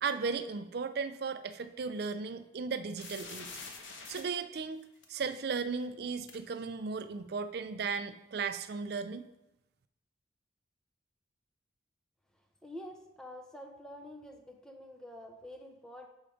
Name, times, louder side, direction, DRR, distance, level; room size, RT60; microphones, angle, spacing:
voice 1, 0.0-3.5 4.1-4.8 5.1-9.2, right 5 dB, 55° right, 10 dB, 0.4 m, -36 dB
sound 1, 3.0-4.2 5.0-5.1 6.3-6.4, left 4 dB, 75° left, 1.0 m, -45 dB
voice 2, 12.6-16.1, left 1 dB, 5° left, 3 dB, 0.5 m, -47 dB
6.4 x 4.4 x 5.0 m, 0.91 s
head